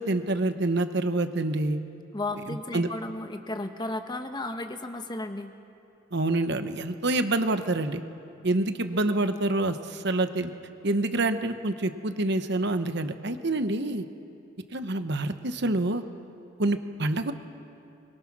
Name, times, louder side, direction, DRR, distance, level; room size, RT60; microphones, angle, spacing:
voice 1, 0.0-1.8 2.5-2.9 6.1-8.0 8.4-10.5 10.8-14.0 14.7-16.0 16.6-17.3, right 2 dB, 55° right, 9 dB, 1.1 m, -27 dB
voice 2, 2.1-5.5, left 2 dB, 20° left, 7 dB, 1.0 m, -34 dB
24.0 x 22.5 x 6.1 m, 2.7 s
head